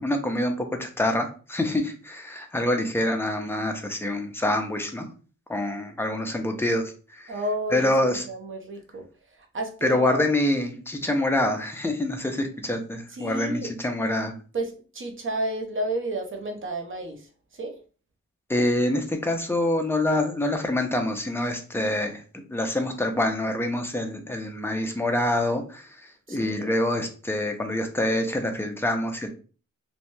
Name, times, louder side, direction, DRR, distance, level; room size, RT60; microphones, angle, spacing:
voice 1, 0.0-5.1 5.5-7.3 7.7-8.2 9.8-14.3 18.5-22.2 22.5-29.3, left 1 dB, 5° left, 5 dB, 0.4 m, -26 dB
voice 2, 7.3-7.9 8.3-9.1 9.4-10.3 13.1-13.7 14.5-17.8 26.3-26.7, right 1 dB, 40° right, 4 dB, 0.6 m, -31 dB
3.0 x 2.1 x 2.6 m, 0.38 s
wide cardioid pair, 105°, 33 cm